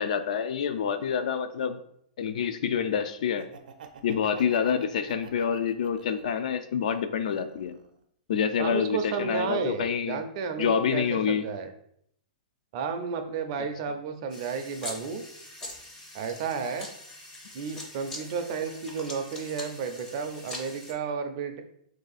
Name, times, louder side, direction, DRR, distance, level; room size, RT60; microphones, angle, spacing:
voice 1, 0.0-1.8 2.2-3.5 4.0-7.7 8.3-10.2 10.6-11.4, left 7 dB, 60° left, 10 dB, 0.4 m, -27 dB
Laughter, 3.2-6.4 6.9-8.0, right 6 dB, 90° right, 0.5 m, -49 dB
voice 2, 8.6-11.7 12.7-15.2 16.1-16.9 17.5-21.6, right 5 dB, 35° right, 6 dB, 0.4 m, -32 dB
sound 1, 14.3-20.9, left 1 dB, 15° left, 0.5 m, -43 dB
3.2 x 2.6 x 4.0 m, 0.69 s
hypercardioid pair, 165°, 4 cm